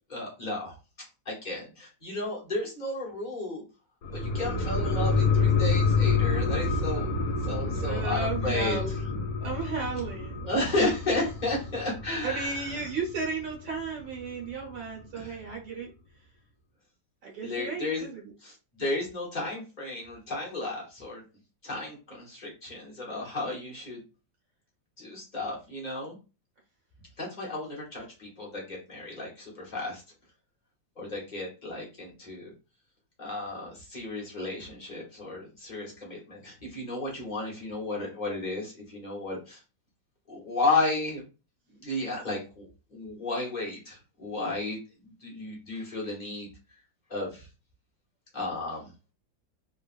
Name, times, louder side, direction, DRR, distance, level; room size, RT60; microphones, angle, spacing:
voice 1, 0.1-0.7 1.2-3.6 4.1-9.2 10.4-12.8 15.1-15.4 17.4-18.1 18.4-21.2 21.6-24.0 25.0-26.2 27.2-30.0 31.0-32.5 33.2-39.6 40.3-41.2 41.8-44.8 45.0-46.5 47.1-47.5 48.3-48.9, left 2 dB, 30° left, -3 dB, 1.0 m, -33 dB
sound 1, 4.0-13.1 13.5-13.6, left 4 dB, 65° left, 1.1 m, -27 dB
voice 2, 7.7-9.1 9.4-10.5 12.2-15.9 17.2-18.3, right 4 dB, 85° right, -3 dB, 1.8 m, -34 dB
3.6 x 2.3 x 2.4 m, 0.32 s
omnidirectional pair, 1.9 m